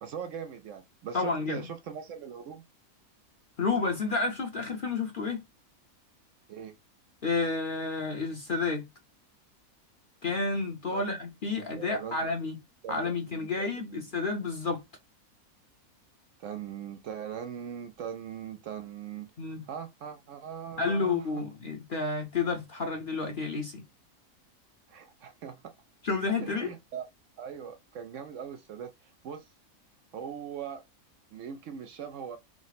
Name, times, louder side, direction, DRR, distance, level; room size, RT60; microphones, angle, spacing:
voice 1, 0.0-2.6 6.5-6.8 10.9-11.0 11.5-12.3 12.8-14.0 16.4-19.3 19.7-21.4 24.9-25.7 26.4-27.1 27.4-29.5 30.1-30.8 31.3-32.4, right 8 dB, 70° right, 0.8 m, -40 dB
voice 2, 1.1-1.6 3.6-5.4 7.2-8.9 10.2-12.6 12.9-14.8 19.4-19.6 20.8-23.8 26.0-26.7, left 4 dB, 45° left, 0.8 m, -30 dB
4.7 x 2.1 x 4.1 m
omnidirectional pair, 1.5 m